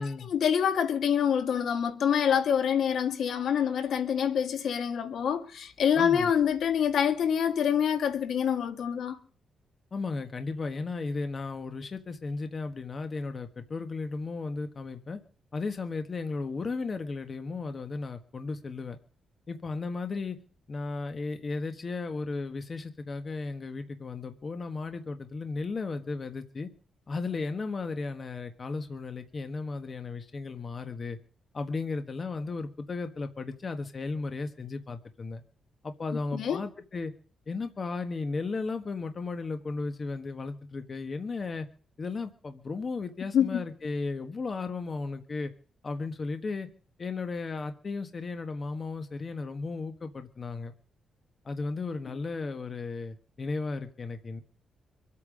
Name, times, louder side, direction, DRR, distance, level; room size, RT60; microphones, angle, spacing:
voice 1, 0.3-9.2 36.3-36.6 43.3-43.6, left 8 dB, 70° left, 1.8 m, -26 dB
voice 2, 6.0-6.3 9.9-15.2 15.5-19.0 19.5-20.4 20.7-26.7 27.1-31.2 31.5-35.4 35.8-37.1 37.5-41.7 42.0-45.5 45.8-46.7 47.0-50.7 51.4-54.4, left 3 dB, 35° left, 1.4 m, -35 dB
25.0 x 8.7 x 5.1 m
cardioid pair, 125°, 0 cm